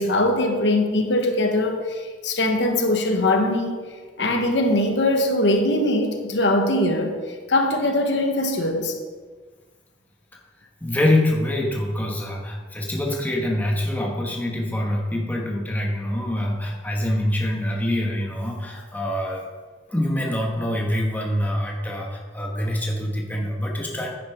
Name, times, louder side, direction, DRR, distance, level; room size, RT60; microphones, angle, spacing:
voice 1, 0.0-3.8 4.2-9.0, left 1 dB, 75° left, 1.2 m, -21 dB
voice 2, 10.8-19.4 19.9-24.1, left 1 dB, 10° left, 1.2 m, -25 dB
10.0 x 9.1 x 3.6 m
head